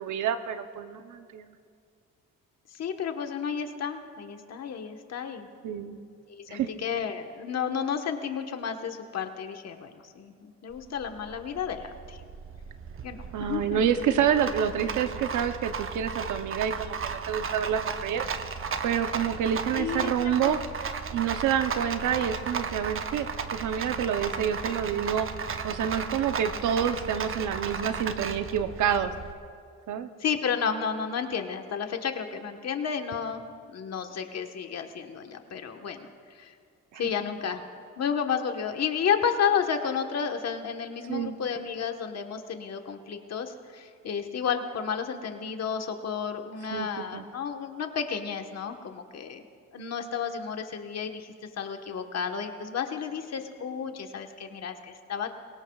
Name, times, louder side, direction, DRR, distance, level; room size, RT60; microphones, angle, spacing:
voice 1, 0.0-1.5 5.6-6.0 6.5-6.7 13.3-18.3 18.8-20.6 21.1-25.3 25.6-29.1 29.9-30.1 36.9-37.0 41.1-41.4 46.7-47.2, right 8 dB, 80° right, 9 dB, 0.8 m, -28 dB
voice 2, 2.7-5.5 6.5-12.2 13.0-13.8 19.7-20.6 30.2-33.4 33.7-36.5 37.0-37.6 38.0-49.4 49.7-55.3, left 7 dB, 55° left, 5 dB, 1.3 m, -32 dB
Rattle, 10.7-29.3, right 6 dB, 45° right, 0.9 m, -35 dB
24.5 x 17.0 x 2.4 m, 2.2 s
cardioid pair, 90°, 30 cm